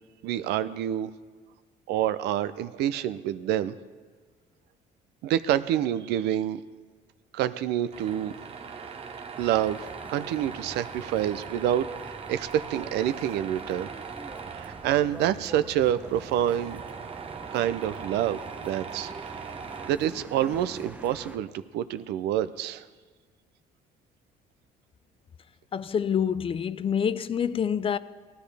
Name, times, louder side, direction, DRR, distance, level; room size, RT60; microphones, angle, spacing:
voice 1, 0.2-1.1 1.9-3.8 5.2-6.6 7.3-8.3 9.4-13.9 14.5-16.8 17.5-19.4 19.9-22.8, right 11 dB, 80° right, 0.5 m, -27 dB
Tools, 7.9-19.9, right 6 dB, 35° right, 0.9 m, -40 dB
sound 1, 9.3-21.4, right 2 dB, 10° right, 0.7 m, -46 dB
voice 2, 25.7-28.0, left 8 dB, 35° left, 0.4 m, -27 dB
17.5 x 12.5 x 3.4 m
cardioid pair, 110°, 17 cm